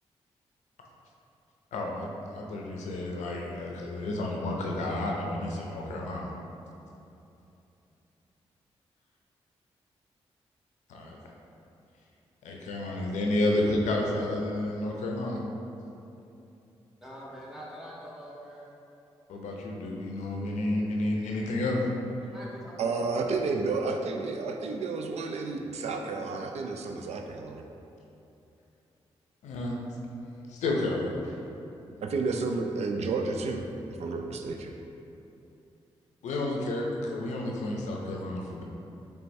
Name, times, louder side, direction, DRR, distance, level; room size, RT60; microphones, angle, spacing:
voice 1, 1.7-6.3 10.9-11.2 12.4-15.4 19.3-21.8 29.4-29.8 30.5-31.2 31.9-32.0 36.2-38.6, left 1 dB, 80° left, -1 dB, 0.5 m, -31 dB
voice 2, 17.0-18.7 22.2-23.1, equal, 5° right, -5 dB, 1.2 m, -44 dB
voice 3, 22.8-27.6 32.0-33.6 34.0-34.7, right 4 dB, 65° right, 3 dB, 0.4 m, -31 dB
4.4 x 3.3 x 2.6 m, 2.8 s
supercardioid pair, 45°, 12 cm